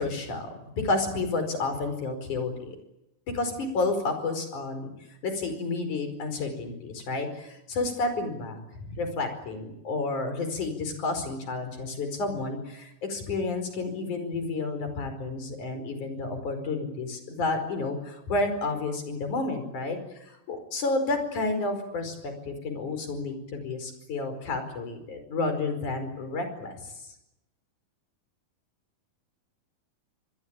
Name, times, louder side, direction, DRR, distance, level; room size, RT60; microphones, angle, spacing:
voice 1, 0.0-2.8 3.3-4.9 5.2-26.9, left 3 dB, 55° left, 8 dB, 6.2 m, -31 dB
26.5 x 21.0 x 9.0 m, 0.88 s
omnidirectional pair, 4.2 m